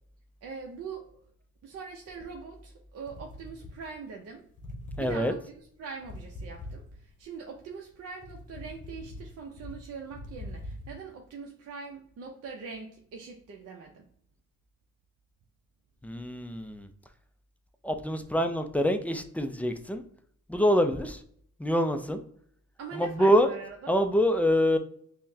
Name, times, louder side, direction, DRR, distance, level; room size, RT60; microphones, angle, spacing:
voice 1, 0.4-1.2 1.6-4.5 5.0-5.4 5.8-14.1 22.8-23.9, right 5 dB, 55° right, 0 dB, 0.6 m, -42 dB
sound 1, 3.1-4.3 4.5-7.3 7.7-11.0, left 1 dB, 25° left, 0.9 m, -43 dB
voice 2, 5.0-5.3 16.0-16.9 17.8-20.0 20.5-21.2 21.6-22.2 22.9-23.5 23.9-24.8, equal, 5° left, 7 dB, 0.3 m, -25 dB
5.5 x 2.1 x 2.6 m, 0.64 s
cardioid pair, 90°, 30 cm